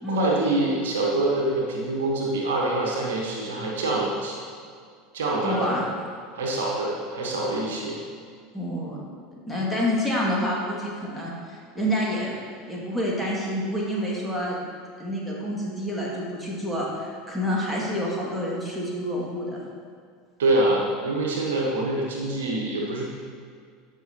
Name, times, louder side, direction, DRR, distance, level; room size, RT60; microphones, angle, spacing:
voice 1, 0.1-4.4 5.1-5.7 6.3-8.0 20.4-23.0, right 2 dB, 65° right, -2 dB, 1.3 m, -25 dB
voice 2, 5.4-5.8 8.5-9.0 9.5-12.4 12.7-14.6 15.0-19.6, equal, ahead, -6 dB, 2.2 m, -28 dB
14.0 x 5.6 x 3.0 m, 2.1 s
figure-of-eight pair, 75°, 0 cm